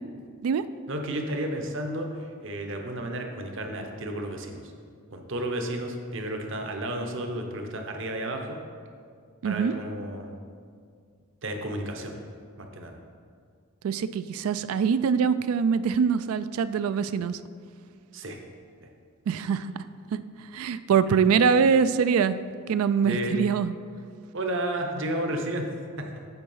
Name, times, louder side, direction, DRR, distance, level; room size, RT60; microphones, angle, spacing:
voice 1, 0.9-4.6 5.1-8.6 9.4-10.3 11.4-12.1 12.6-13.0 18.1-18.4 23.0-23.4 24.3-25.7 26.0-26.1, right 1 dB, 60° right, 3 dB, 0.8 m, -32 dB
voice 2, 9.4-9.7 13.8-17.4 19.3-19.7 20.1-20.2 20.5-22.4 22.7-23.7, right 6 dB, 85° right, 13 dB, 0.3 m, -23 dB
8.0 x 4.6 x 5.5 m, 2.1 s
head